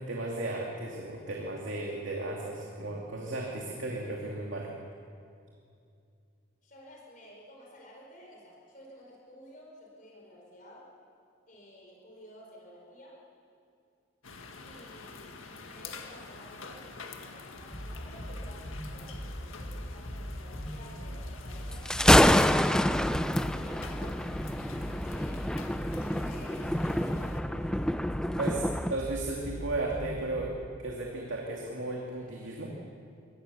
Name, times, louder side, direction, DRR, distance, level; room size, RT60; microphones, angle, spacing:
voice 1, 0.0-4.7 28.4-30.5 30.8-32.7, right 2 dB, 70° right, -1 dB, 2.6 m, -35 dB
voice 2, 6.6-10.9 11.5-13.2 14.6-23.9 24.7-25.4 26.0-28.0, equal, 40° left, -2 dB, 4.6 m, -53 dB
sound 1, 14.2-27.4, left 4 dB, 85° left, 1.9 m, -47 dB
sound 2, 17.5-30.4, equal, 20° left, 6.8 m, -40 dB
Thunder, 21.7-29.0, left 1 dB, 5° left, 0.4 m, -26 dB
24.5 x 19.5 x 7.1 m, 2.5 s
head